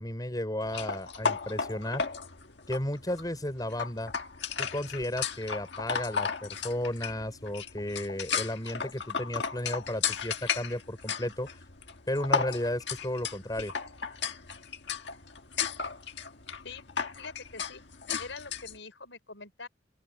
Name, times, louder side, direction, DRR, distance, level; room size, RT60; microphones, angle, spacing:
voice 1, 0.0-2.0 2.7-4.1 4.6-11.5 12.1-13.7, left 1 dB, 20° left, 5.7 m, -33 dB
sound 1, 0.7-18.8, left 6 dB, 70° left, 1.6 m, -35 dB
voice 2, 17.2-17.8 18.2-19.7, left 4 dB, 90° left, 5.2 m, -44 dB
open air
head